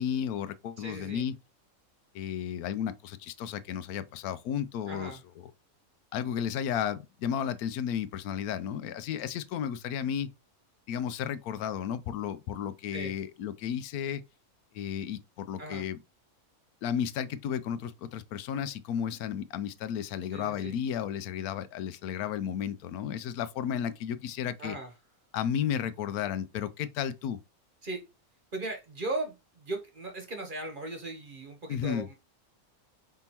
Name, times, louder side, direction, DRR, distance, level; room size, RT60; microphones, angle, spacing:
voice 1, 0.0-1.3 2.1-5.2 6.1-10.3 10.9-14.2 14.7-16.0 16.8-24.8 25.3-27.4 31.7-32.1, left 9 dB, 85° left, 1.1 m, -33 dB
voice 2, 0.8-1.2 4.9-5.2 12.9-13.1 15.6-15.8 20.3-20.7 24.6-24.9 27.8-28.0 28.5-32.1, right 2 dB, 40° right, 1.0 m, -38 dB
5.0 x 3.7 x 2.8 m
omnidirectional pair, 1.5 m